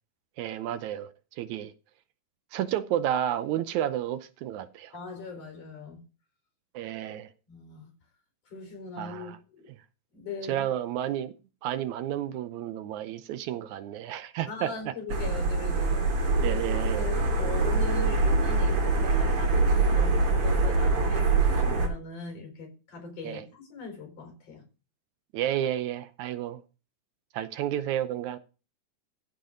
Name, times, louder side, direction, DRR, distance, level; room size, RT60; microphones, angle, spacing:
voice 1, 0.4-1.1 1.4-1.7 2.5-4.9 6.7-7.3 9.0-9.4 10.5-11.3 11.6-14.9 16.4-17.1 23.2-23.5 25.3-26.6 27.3-28.4, right 11 dB, 80° right, 2.1 m, -31 dB
voice 2, 4.9-6.0 7.5-7.9 8.5-9.7 10.1-10.7 14.5-16.6 17.0-24.6, left 4 dB, 55° left, 5.6 m, -40 dB
sound 1, 15.1-21.9, right 3 dB, 50° right, 3.3 m, -24 dB
15.0 x 5.3 x 5.1 m
omnidirectional pair, 3.4 m